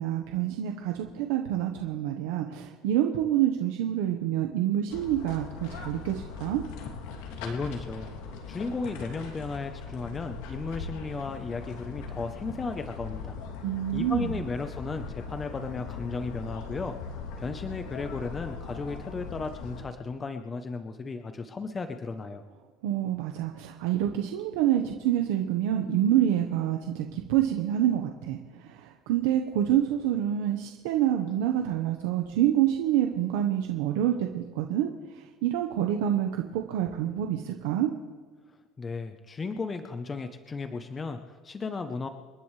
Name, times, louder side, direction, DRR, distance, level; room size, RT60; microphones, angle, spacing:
voice 1, 0.0-6.6 13.6-14.4 22.8-37.9, right 11 dB, 85° right, 3 dB, 1.1 m, -27 dB
sound 1, 4.9-19.8, left 5 dB, 80° left, 2.8 m, -40 dB
voice 2, 7.4-13.4 13.9-16.9 17.4-22.4 38.8-42.1, left 4 dB, 20° left, 7 dB, 0.8 m, -35 dB
29.0 x 10.5 x 3.3 m, 1.5 s
cardioid pair, 145°, 0 cm